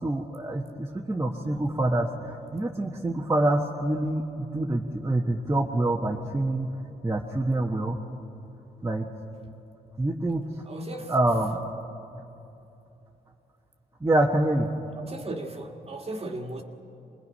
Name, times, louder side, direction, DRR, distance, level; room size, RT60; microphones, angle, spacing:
voice 1, 0.0-6.7 7.0-8.0 8.8-9.1 10.0-10.4 11.1-11.6 14.0-14.7, right 1 dB, 15° right, -1 dB, 1.4 m, -26 dB
voice 2, 10.7-11.1 15.0-16.6, right 2 dB, 35° right, 3 dB, 1.9 m, -36 dB
25.0 x 20.0 x 5.6 m, 2.9 s
cardioid pair, 70°, 17 cm